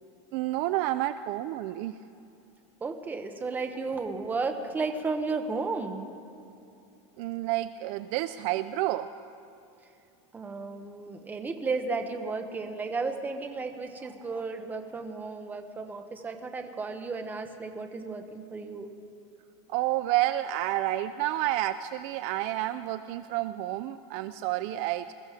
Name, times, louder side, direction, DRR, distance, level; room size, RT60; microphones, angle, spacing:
voice 1, 0.3-1.9 7.2-9.1 19.7-25.1, right 15 dB, 45° right, 11 dB, 0.4 m, -29 dB
voice 2, 2.8-6.1 10.3-18.9, right 4 dB, 10° right, 6 dB, 0.8 m, -33 dB
20.5 x 14.0 x 4.9 m, 2.6 s
supercardioid pair, 170°, 15 cm